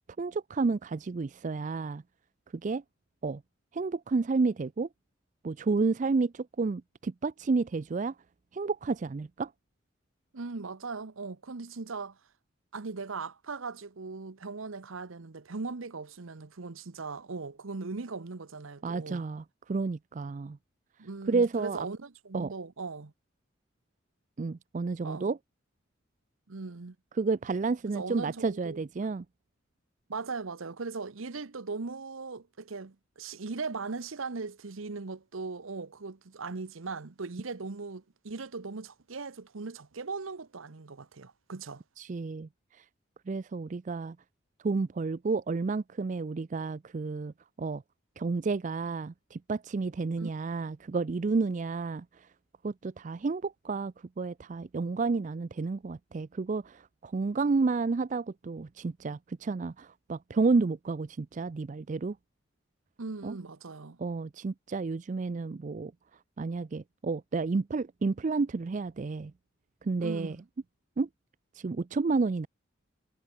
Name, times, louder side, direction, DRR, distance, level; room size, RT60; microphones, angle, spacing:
voice 1, 0.2-2.0 2.5-2.8 3.2-3.4 3.7-4.9 5.4-8.2 8.5-9.5 18.8-20.6 21.3-21.9 22.3-22.5 24.4-25.4 27.1-29.2 42.0-42.8 43.3-44.2 44.6-47.8 48.2-52.3 52.6-62.2 63.2-63.4 64.0-65.9 66.4-69.3 69.8-70.4 71.0-71.1 71.5-72.5, right 4 dB, 40° right, 0.4 m, -31 dB
voice 2, 10.3-12.2 12.7-19.2 21.0-23.1 25.0-25.3 26.5-27.0 27.9-28.8 30.1-41.8 50.2-50.3 63.0-64.0 70.0-70.4, right 4 dB, 85° right, 0.9 m, -39 dB
head